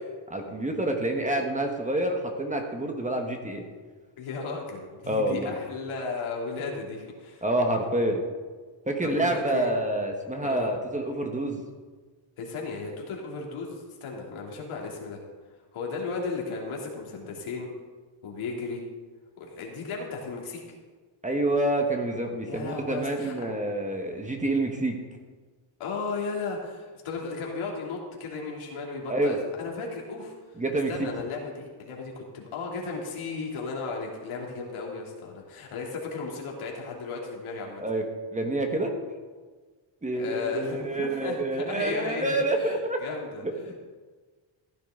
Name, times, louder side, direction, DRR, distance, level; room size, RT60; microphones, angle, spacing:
voice 1, 0.3-3.6 5.1-5.5 7.4-8.2 8.9-11.6 21.2-25.0 29.1-29.4 30.6-30.9 37.8-38.0 38.3-38.9 40.0-43.0 43.4-43.7, right 1 dB, 15° right, 3 dB, 1.4 m, -27 dB
voice 2, 4.2-7.4 9.0-9.8 10.4-10.7 12.4-15.2 15.7-17.7 18.2-18.8 19.4-20.6 22.5-23.3 25.8-30.6 30.9-37.8 40.1-43.7, left 4 dB, 75° left, -2 dB, 3.0 m, -35 dB
15.0 x 10.0 x 3.8 m, 1.4 s
cardioid pair, 120°, 50 cm